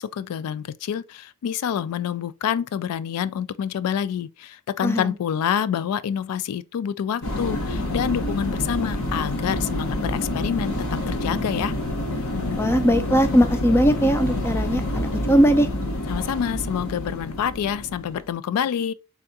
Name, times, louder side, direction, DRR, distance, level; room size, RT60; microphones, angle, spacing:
voice 1, 0.0-11.7 16.1-18.9, left 8 dB, 90° left, 0.3 m, -27 dB
voice 2, 4.8-5.1 12.6-15.7, equal, 10° left, 0.4 m, -19 dB
sound 1, 7.2-18.2, left 1 dB, 75° left, 1.1 m, -27 dB
3.5 x 3.4 x 2.7 m
head